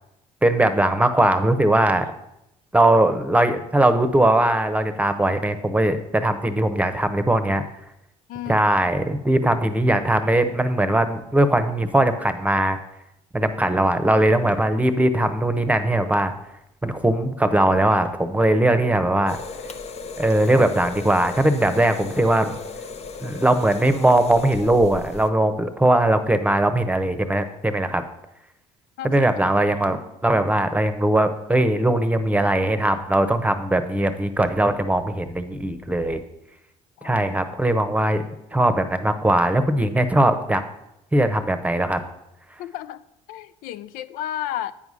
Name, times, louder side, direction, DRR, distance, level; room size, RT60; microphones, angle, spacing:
voice 1, 0.4-2.1 2.7-7.6 8.5-12.8 13.3-16.3 16.8-19.4 20.2-22.5 23.2-28.0 29.0-30.0 30.2-36.2 37.0-38.2 38.5-40.6 41.1-42.0, right 1 dB, 10° right, 10 dB, 1.0 m, -20 dB
voice 2, 8.3-8.6 29.0-29.6 37.0-37.2 37.5-37.6 42.6-43.0 43.3-44.7, left 11 dB, 70° left, 13 dB, 0.4 m, -33 dB
sound 1, 19.3-25.3, left 4 dB, 45° left, 0.8 m, -36 dB
8.8 x 4.8 x 5.5 m, 0.85 s
hypercardioid pair, 65°, 15 cm